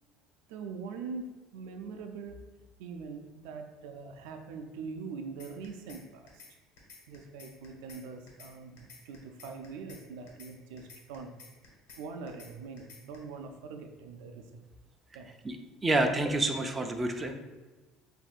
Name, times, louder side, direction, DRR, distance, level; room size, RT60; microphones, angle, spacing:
voice 1, 0.5-2.4 2.8-6.4 7.1-11.3 12.0-14.6 15.1-15.3, right 4 dB, 85° right, 5 dB, 0.4 m, -43 dB
sound 1, 5.4-6.0 6.3-6.5 6.8-8.0 8.3-8.5 8.8-10.0 10.3-10.5 10.8-12.0 12.3-12.5 12.8-13.2, left 5 dB, 85° left, 1.3 m, -51 dB
voice 2, 15.8-17.3, right 2 dB, 20° right, 4 dB, 0.5 m, -28 dB
7.2 x 2.6 x 2.4 m, 1.2 s
supercardioid pair, 110°, 0 cm